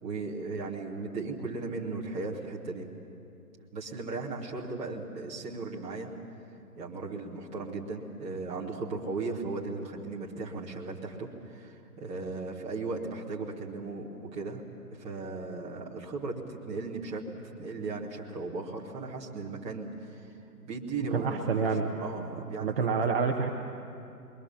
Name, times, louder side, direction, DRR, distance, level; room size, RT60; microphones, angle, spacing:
voice 1, 0.0-2.9 3.7-6.1 6.8-14.6 14.9-20.3 20.6-21.6 22.0-22.9, right 3 dB, 15° right, -3 dB, 2.4 m, -37 dB
voice 2, 21.1-21.9 22.6-23.5, right 5 dB, 35° right, 2 dB, 1.4 m, -28 dB
28.0 x 22.5 x 7.4 m, 2.6 s
figure-of-eight pair, 145°, 48 cm